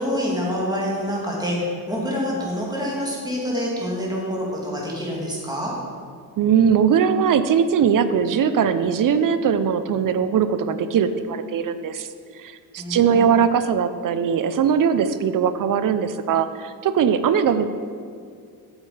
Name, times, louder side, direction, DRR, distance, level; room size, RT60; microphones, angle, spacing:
voice 1, 0.0-5.7 12.8-13.5, equal, 10° right, -4 dB, 2.6 m, -26 dB
voice 2, 6.4-12.1 12.4-17.7, right 7 dB, 55° right, 11 dB, 0.6 m, -20 dB
8.1 x 7.4 x 5.0 m, 2.2 s
cardioid pair, 105°, 38 cm